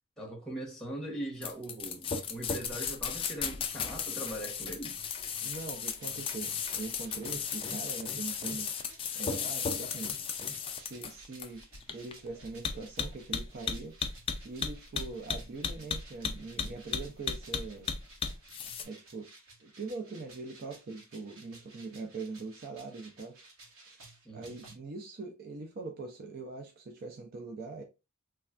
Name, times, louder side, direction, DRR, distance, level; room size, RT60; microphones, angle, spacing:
voice 1, 0.2-5.0 24.2-24.6, right 1 dB, ahead, 0.8 m, -41 dB
sound 1, 1.4-18.8, left 6 dB, 25° left, 0.3 m, -35 dB
sound 2, 5.3-24.8, right 2 dB, 60° right, 1.1 m, -56 dB
voice 2, 5.4-8.9 9.2-10.1 10.7-17.9 18.8-19.3 19.6-23.5 23.8-24.0 24.3-27.8, right 3 dB, 45° right, 0.4 m, -42 dB
3.2 x 2.2 x 2.3 m
head